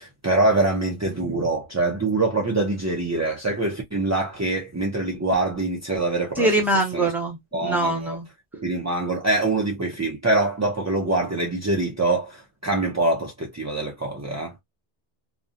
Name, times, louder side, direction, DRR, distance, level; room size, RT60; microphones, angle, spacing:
voice 1, 0.0-6.5 6.9-7.1 7.5-8.2 8.5-14.5, right 2 dB, 30° right, 0.3 m, -24 dB
voice 2, 6.4-8.3, right 1 dB, ahead, 0.8 m, -23 dB
2.6 x 2.1 x 2.4 m
omnidirectional pair, 1.1 m